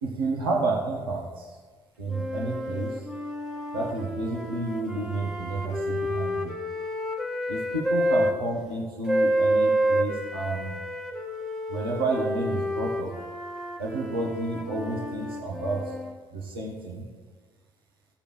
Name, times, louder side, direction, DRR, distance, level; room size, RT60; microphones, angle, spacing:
voice 1, 0.0-1.6 2.0-3.0 3.7-6.6 7.5-10.8 11.7-13.1 13.8-15.9 16.3-17.1, right 2 dB, 80° right, -2 dB, 1.3 m, -30 dB
sound 1, 2.1-8.4 9.1-16.2, equal, ahead, 1.4 m, -29 dB
16.0 x 6.8 x 3.3 m, 1.4 s
figure-of-eight pair, 50°, 12 cm